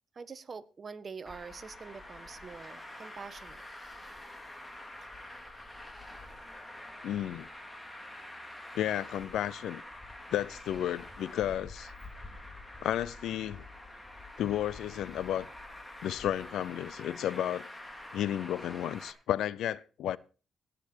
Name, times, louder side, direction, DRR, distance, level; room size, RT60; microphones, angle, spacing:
voice 1, 0.1-3.6, right 5 dB, 40° right, 1.2 m, -45 dB
Traffic noise roadway noise, 1.3-19.1, left 1 dB, 15° left, 2.3 m, -47 dB
voice 2, 7.0-7.5 8.7-9.8 10.3-11.9 12.8-13.7 14.4-15.5 16.0-17.7 18.1-20.2, left 11 dB, 85° left, 0.6 m, -32 dB
18.5 x 7.1 x 4.4 m
cardioid pair, 95°, 0 cm